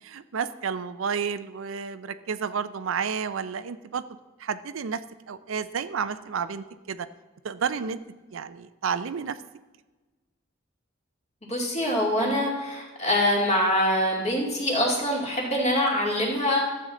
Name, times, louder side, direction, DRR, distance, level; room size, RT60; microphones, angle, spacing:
voice 1, 0.0-4.0 4.4-5.0 5.3-7.1 7.4-8.0 8.3-9.4 12.2-12.5, right 6 dB, 80° right, 13 dB, 0.5 m, -31 dB
voice 2, 11.4-16.7, left 1 dB, 35° left, -2 dB, 2.5 m, -24 dB
12.5 x 7.8 x 3.8 m, 1.2 s
head